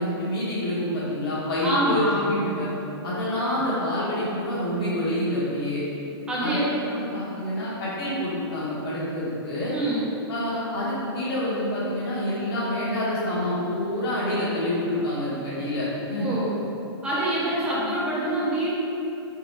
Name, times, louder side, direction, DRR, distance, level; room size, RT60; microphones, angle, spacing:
voice 1, 0.0-2.7 3.0-5.8 6.4-6.6 6.9-9.7 10.3-16.3 17.7-17.9, left 1 dB, 60° left, -9 dB, 1.4 m, -27 dB
voice 2, 1.6-2.3 6.3-6.7 9.7-10.0 16.2-16.5 17.0-18.7, right 1 dB, 5° right, -9 dB, 0.6 m, -25 dB
5.3 x 2.3 x 2.3 m, 3.0 s
hypercardioid pair, 160°, 14 cm